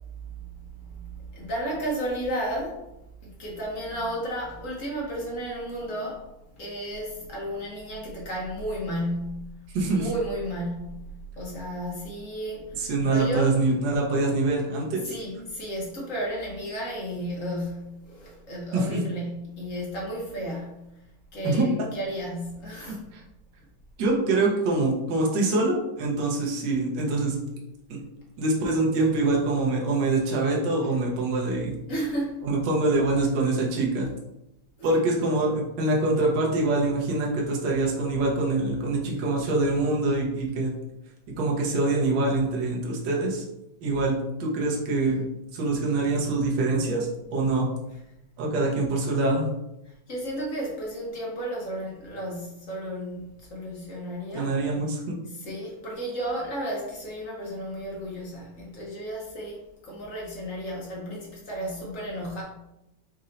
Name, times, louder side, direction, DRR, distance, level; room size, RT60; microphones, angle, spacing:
voice 1, 0.8-2.8 3.2-6.3 6.5-9.5 9.8-11.0 11.4-13.5 15.1-20.9 21.3-23.0 31.9-32.4 34.8-35.1 49.9-54.5 55.4-62.4, equal, 50° left, -3 dB, 1.0 m, -33 dB
voice 2, 9.7-10.1 12.8-15.1 18.7-19.0 21.4-21.6 22.8-23.2 24.0-27.4 27.9-28.0 28.4-31.7 32.4-34.1 34.8-40.7 41.4-43.4 43.8-45.3 45.5-47.7 48.4-49.5 54.3-55.0, right 2 dB, 65° right, -2 dB, 1.5 m, -25 dB
4.3 x 2.7 x 3.8 m, 0.89 s
omnidirectional pair, 2.2 m